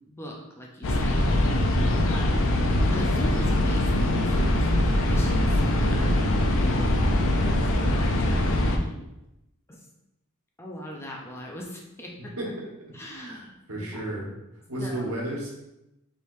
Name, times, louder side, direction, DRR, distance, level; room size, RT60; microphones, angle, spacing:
voice 1, 0.1-1.8 2.0-2.5 2.9-7.5 7.8-9.0 9.7-9.8 10.6-12.3 12.9-14.1 14.8-15.1, equal, 10° left, -1 dB, 0.5 m, -41 dB
sound 1, 0.8-8.8, left 1 dB, 60° left, 0.6 m, -22 dB
voice 2, 12.4-12.7 13.1-14.3 14.7-15.5, right 1 dB, 85° right, -3 dB, 1.4 m, -33 dB
4.7 x 3.4 x 2.6 m, 0.90 s
head